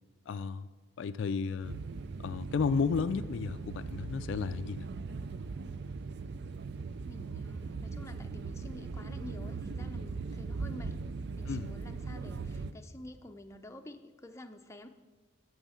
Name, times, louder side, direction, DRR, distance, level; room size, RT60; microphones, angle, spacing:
voice 1, 0.3-0.7 1.0-1.8 2.2-4.9 11.5-11.7, left 5 dB, 65° left, 13 dB, 0.3 m, -32 dB
sound 1, 1.6-12.7, right 4 dB, 55° right, 0.4 m, -39 dB
voice 2, 7.0-11.0 11.4-14.9, left 1 dB, 15° left, 5 dB, 0.6 m, -49 dB
9.2 x 6.2 x 8.3 m, 1.3 s
head